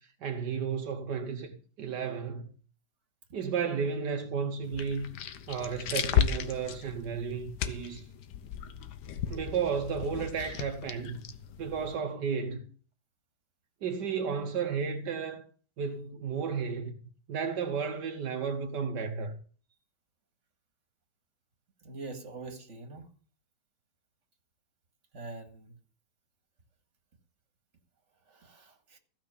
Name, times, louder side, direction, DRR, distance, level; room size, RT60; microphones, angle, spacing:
voice 1, 0.2-1.5 1.8-2.5 3.3-5.1 5.5-8.0 8.5-8.6 9.3-11.2 11.6-12.6 13.8-15.4 15.8-16.9 17.3-19.4, right 6 dB, 80° right, 1.7 m, -33 dB
sound 1, 4.6-12.0, left 9 dB, 80° left, 1.5 m, -34 dB
voice 2, 21.8-23.0 25.1-25.7 28.3-29.0, right 3 dB, 45° right, 2.3 m, -44 dB
15.0 x 6.0 x 7.1 m
omnidirectional pair, 1.8 m